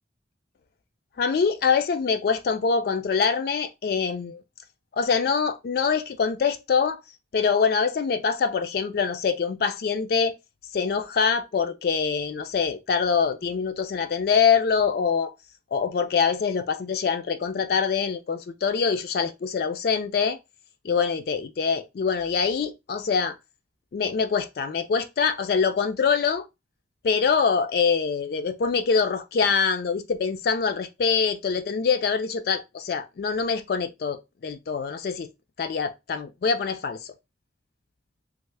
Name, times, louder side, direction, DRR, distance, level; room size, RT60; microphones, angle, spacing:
voice 1, 1.2-4.4 5.0-7.0 7.3-10.3 10.7-15.3 15.7-20.4 20.8-23.4 23.9-26.4 27.0-35.3 35.6-37.1, left 5 dB, 55° left, 0.3 m, -24 dB
3.2 x 2.0 x 3.2 m
head